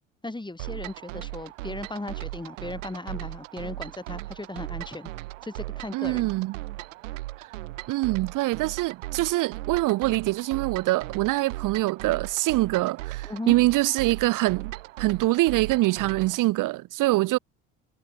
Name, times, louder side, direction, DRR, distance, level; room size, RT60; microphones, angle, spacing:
voice 1, 0.2-5.1 5.4-6.3 13.2-13.6, left 2 dB, 10° left, 3.9 m, -36 dB
sound 1, 0.6-16.5, right 18 dB, 75° right, 3.8 m, -38 dB
voice 2, 5.9-6.6 7.4-7.5 7.9-14.7 15.0-17.4, right 19 dB, 55° right, 0.9 m, -24 dB
figure-of-eight pair, 55°, 38 cm